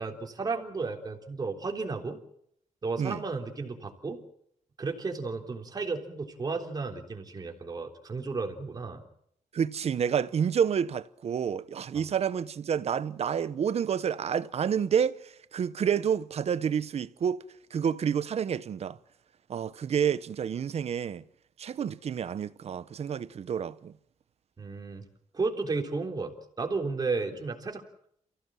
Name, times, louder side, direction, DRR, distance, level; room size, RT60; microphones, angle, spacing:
voice 1, 0.0-2.2 2.8-4.2 4.8-9.0 11.9-12.0 24.6-25.0 25.3-27.8, right 4 dB, 30° right, 3.6 m, -33 dB
voice 2, 9.5-17.4 17.7-19.0 19.5-21.2 21.6-23.9, right 8 dB, 55° right, 1.0 m, -29 dB
29.0 x 16.0 x 7.6 m
wide cardioid pair, 160°, 13 cm